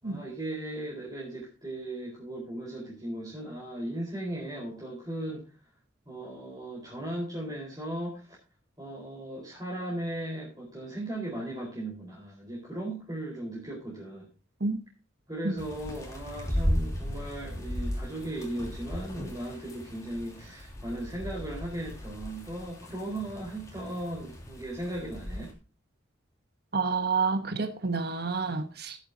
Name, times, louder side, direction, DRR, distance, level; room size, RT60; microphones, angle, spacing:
voice 1, 0.0-5.5 6.1-8.4 8.8-14.3 15.3-25.5, right 1 dB, 20° right, 4.4 m, -37 dB
sound 1, 15.6-25.5, equal, 15° left, 3.1 m, -36 dB
voice 2, 26.7-29.0, right 4 dB, 55° right, 1.2 m, -29 dB
17.5 x 8.5 x 2.8 m
head